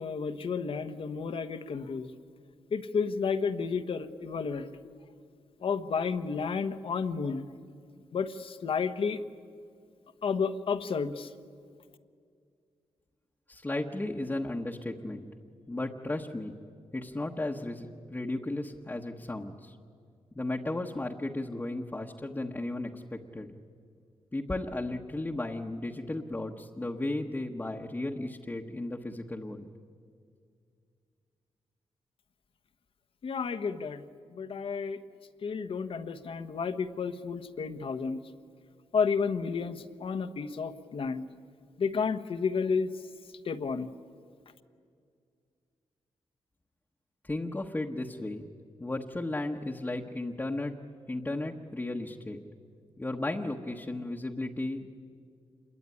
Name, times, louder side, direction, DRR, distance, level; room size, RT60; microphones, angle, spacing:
voice 1, 0.0-2.1 2.7-4.7 5.6-7.4 8.1-9.2 10.2-11.3 33.2-34.0 34.3-35.0 35.4-38.2 38.9-41.2 41.8-42.9 43.4-43.9, left 5 dB, 60° left, 10 dB, 1.2 m, -31 dB
voice 2, 13.5-15.3 15.7-16.5 16.9-19.8 20.3-23.5 24.3-29.6 47.2-48.4 48.8-50.8 51.1-52.4 53.0-55.0, left 2 dB, 15° left, 0 dB, 1.2 m, -35 dB
27.0 x 22.0 x 9.8 m, 2.3 s
wide cardioid pair, 115°, 10 cm